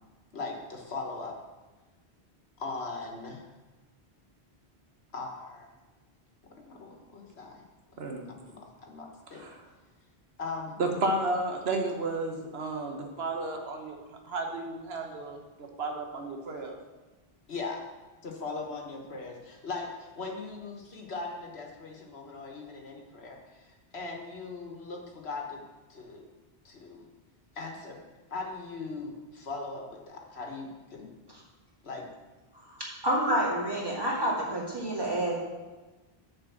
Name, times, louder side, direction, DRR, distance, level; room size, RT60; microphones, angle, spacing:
voice 1, 0.3-1.4 2.6-3.4 5.1-5.7 6.5-7.6 8.3-9.4 10.4-10.8 17.5-17.8 18.2-23.4 23.6-25.6 25.9-26.2 26.6-27.0 27.5-28.0 28.3-31.1 31.8-32.1, left 3 dB, 75° left, 1 dB, 1.6 m, -39 dB
voice 2, 8.0-8.3 9.3-9.6 10.8-14.0 14.3-16.8, right 2 dB, 70° right, 3 dB, 1.3 m, -32 dB
voice 3, 33.0-35.4, right 1 dB, 20° right, -4 dB, 2.1 m, -28 dB
6.7 x 5.5 x 7.2 m, 1.2 s
omnidirectional pair, 1.1 m